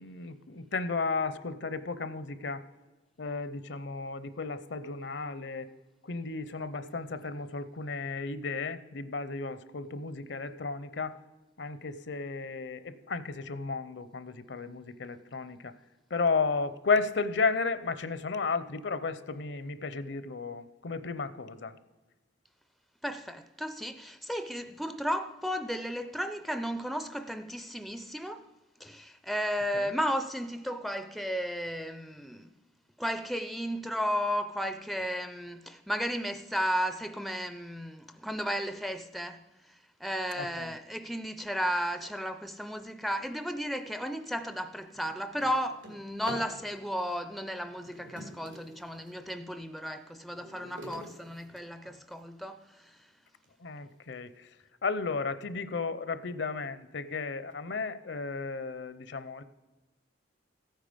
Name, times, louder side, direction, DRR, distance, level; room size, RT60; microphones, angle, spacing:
voice 1, 0.0-2.6 3.2-5.7 6.0-11.2 11.6-15.7 16.1-21.7 29.7-29.9 40.4-40.7 53.6-54.5 54.8-59.4, left 4 dB, 70° left, 0.6 m, -33 dB
voice 2, 23.0-28.5 28.8-32.5 33.0-39.4 39.7-53.0, equal, ahead, 0.4 m, -34 dB
Drawer open or close, 44.7-46.6 47.6-49.2 49.8-52.2 52.8-52.9 53.4-53.5 53.9-54.3, equal, 85° right, 2.9 m, -47 dB
15.0 x 9.2 x 5.1 m
head